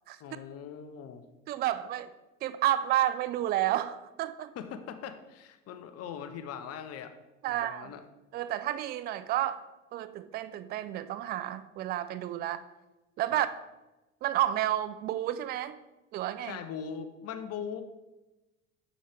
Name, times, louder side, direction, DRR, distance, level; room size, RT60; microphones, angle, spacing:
voice 1, 0.2-1.2 4.6-7.1 7.5-8.0 13.3-13.4 16.4-17.8, left 7 dB, 40° left, 8 dB, 0.8 m, -40 dB
voice 2, 1.5-2.1 2.4-4.5 7.4-7.9 8.3-9.6 9.9-12.6 13.2-13.5 14.2-15.8 16.1-16.6, right 13 dB, 25° right, 13 dB, 0.4 m, -30 dB
7.2 x 6.3 x 3.4 m, 1.0 s
hypercardioid pair, 80°, 38 cm